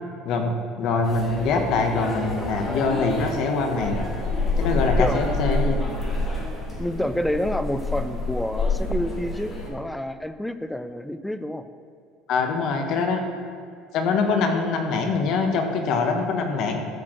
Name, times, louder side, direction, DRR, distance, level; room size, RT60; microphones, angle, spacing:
voice 1, 0.2-4.0 4.6-5.8 12.3-13.2 13.9-16.8, left 4 dB, 50° left, 4 dB, 1.3 m, -24 dB
sound 1, 1.0-9.7, left 2 dB, 25° left, 2.7 m, -28 dB
voice 2, 4.7-5.4 6.8-11.6, left 1 dB, 5° left, 10 dB, 0.4 m, -28 dB
13.5 x 4.7 x 7.5 m, 2.4 s
cardioid pair, 165°, 0 cm